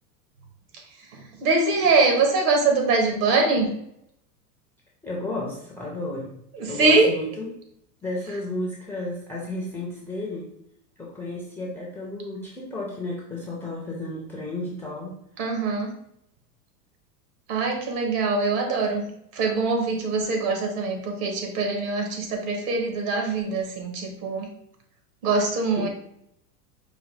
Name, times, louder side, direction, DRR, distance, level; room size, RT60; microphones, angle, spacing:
voice 1, 1.1-3.7 6.5-7.1 15.4-15.9 17.5-19.0 19.3-24.5 25.2-25.9, right 3 dB, 65° right, 3 dB, 1.4 m, -23 dB
voice 2, 5.0-6.3 6.7-7.5 8.0-10.5 11.0-15.2 25.8-25.9, left 2 dB, 5° left, -4 dB, 0.3 m, -33 dB
4.8 x 2.3 x 3.3 m, 0.74 s
hypercardioid pair, 115°, 48 cm